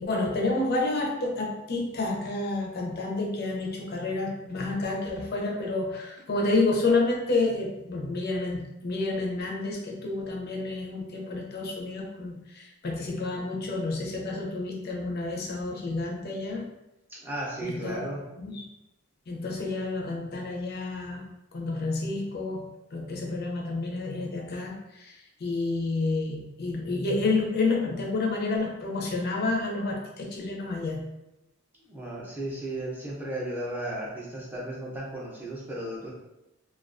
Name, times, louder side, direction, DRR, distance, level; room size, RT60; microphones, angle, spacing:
voice 1, 0.0-16.7 17.6-18.0 18.4-18.6 19.3-31.0, left 3 dB, 45° left, 0 dB, 0.4 m, -29 dB
voice 2, 17.1-18.2 31.8-36.1, right 1 dB, 10° right, -5 dB, 0.4 m, -35 dB
2.3 x 2.2 x 2.4 m, 0.93 s
head